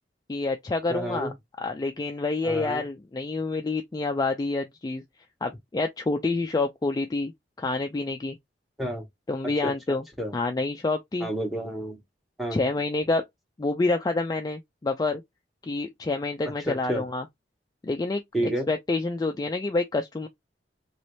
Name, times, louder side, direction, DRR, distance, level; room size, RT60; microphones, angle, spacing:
voice 1, 0.3-5.0 5.4-7.3 7.6-8.4 9.3-10.0 10.3-11.3 12.5-13.2 13.6-15.2 15.6-17.3 17.8-18.2 18.7-20.3, left 3 dB, 20° left, 0.3 m, -28 dB
voice 2, 0.9-1.3 2.4-2.8 8.8-9.0 9.6-10.3 11.2-12.0 12.4-12.6 16.6-17.0 18.3-18.7, right 1 dB, ahead, 1.1 m, -30 dB
3.0 x 2.8 x 3.1 m
head